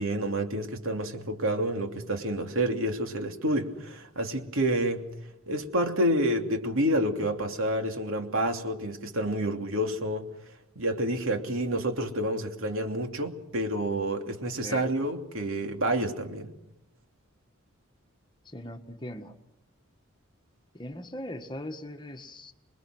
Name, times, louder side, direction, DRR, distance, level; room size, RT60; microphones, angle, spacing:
voice 1, 0.0-5.1 5.5-10.3 10.7-16.5, right 1 dB, 80° right, 3.0 m, -29 dB
voice 2, 18.4-19.4 20.7-22.5, left 1 dB, 20° left, 1.6 m, -40 dB
27.0 x 22.5 x 6.2 m
head